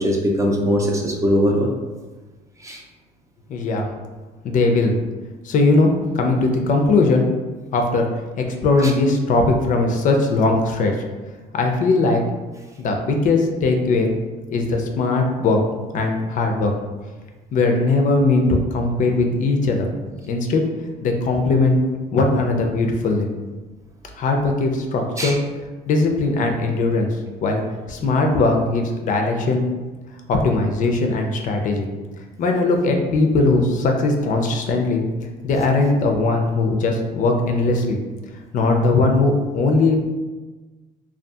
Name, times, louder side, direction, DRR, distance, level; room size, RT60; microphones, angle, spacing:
voice 1, 0.0-1.7 2.6-2.8 8.8-8.9 25.2-25.4, equal, 20° right, 0 dB, 0.3 m, -20 dB
voice 2, 3.5-3.9 4.4-4.9 5.4-7.3 7.7-8.1 8.4-10.9 11.5-12.2 12.8-14.1 14.5-15.6 15.9-16.7 17.5-19.9 20.2-20.6 21.0-21.8 22.1-23.3 24.2-25.4 25.9-27.1 27.4-27.6 27.9-29.7 30.3-31.9 32.4-35.0 35.4-38.0 38.5-40.1, left 3 dB, 50° left, 3 dB, 0.4 m, -19 dB
2.6 x 2.3 x 2.2 m, 1.3 s
cardioid pair, 110°, 17 cm